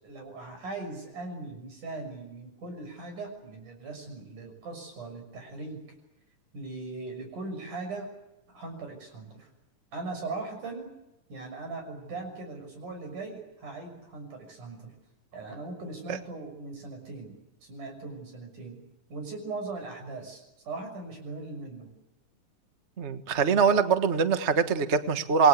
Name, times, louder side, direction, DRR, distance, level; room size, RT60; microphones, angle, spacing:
voice 1, 0.0-5.8 6.5-8.1 8.5-9.5 9.9-10.9 11.3-14.9 15.3-18.8 19.1-21.9, right 3 dB, 70° right, 5 dB, 7.9 m, -39 dB
voice 2, 23.0-25.5, right 5 dB, 45° right, 9 dB, 0.8 m, -23 dB
28.0 x 21.5 x 8.4 m, 0.93 s
omnidirectional pair, 3.7 m